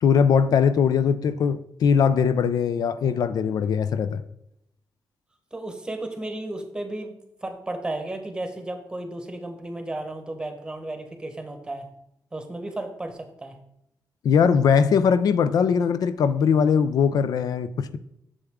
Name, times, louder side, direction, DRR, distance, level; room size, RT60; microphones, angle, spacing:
voice 1, 0.0-4.2 14.2-18.0, left 6 dB, 70° left, 13 dB, 0.4 m, -21 dB
voice 2, 5.5-7.1 7.4-11.9 12.3-13.6, right 2 dB, 10° right, 6 dB, 1.1 m, -34 dB
8.0 x 7.0 x 3.6 m, 0.78 s
wide cardioid pair, 140°, 7 cm